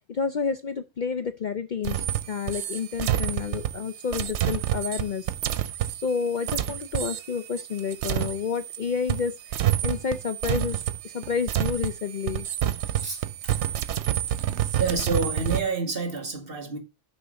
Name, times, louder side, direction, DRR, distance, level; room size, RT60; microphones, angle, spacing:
voice 1, 0.1-5.3 5.9-10.8 11.0-12.5, left 6 dB, 50° left, 0.6 m, -30 dB
sound 1, 1.8-8.8 9.1-15.6, right 11 dB, 70° right, 0.9 m, -28 dB
voice 2, 13.0-13.9 14.8-16.8, right 3 dB, 50° right, 2.1 m, -29 dB
6.5 x 5.7 x 6.4 m
omnidirectional pair, 1.2 m